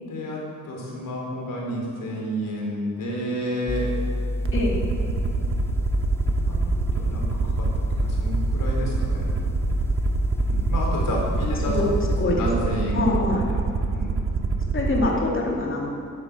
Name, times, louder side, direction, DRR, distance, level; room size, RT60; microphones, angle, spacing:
voice 1, 0.0-3.9 6.4-6.6 6.9-9.3 10.4-11.8 12.3-13.0 13.3-13.6 13.9-14.2, equal, 80° left, -2 dB, 4.3 m, -30 dB
sound 1, 3.7-12.3, left 1 dB, 10° left, 0.3 m, -28 dB
Aircraft, 4.5-15.1, right 4 dB, 40° right, 1.0 m, -26 dB
voice 2, 12.9-13.4 14.7-15.9, left 2 dB, 40° left, -2 dB, 2.8 m, -24 dB
12.0 x 10.5 x 7.8 m, 2.3 s
wide cardioid pair, 135°, 32 cm